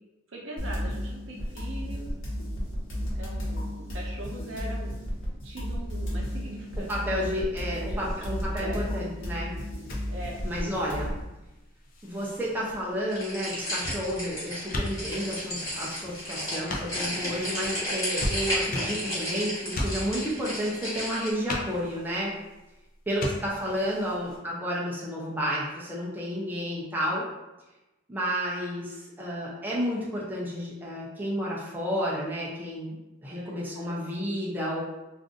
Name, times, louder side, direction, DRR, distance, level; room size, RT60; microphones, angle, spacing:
voice 1, 0.3-2.1 2.9-4.9 5.4-8.2 8.6-8.8 10.1-11.2 24.0-24.2 33.3-34.0, right 1 dB, 65° right, -2 dB, 0.7 m, -42 dB
sound 1, 0.6-11.2, equal, 75° left, 1.1 m, -33 dB
sound 2, 6.2-24.4, left 1 dB, 45° left, 0.5 m, -40 dB
voice 2, 6.9-9.6 10.4-11.1 12.0-22.3 23.1-27.2 28.1-33.0 33.2-34.8, equal, 10° right, -5 dB, 0.4 m, -31 dB
sound 3, 13.1-21.3, equal, 20° left, 1.3 m, -33 dB
2.5 x 2.4 x 3.6 m, 1.0 s
head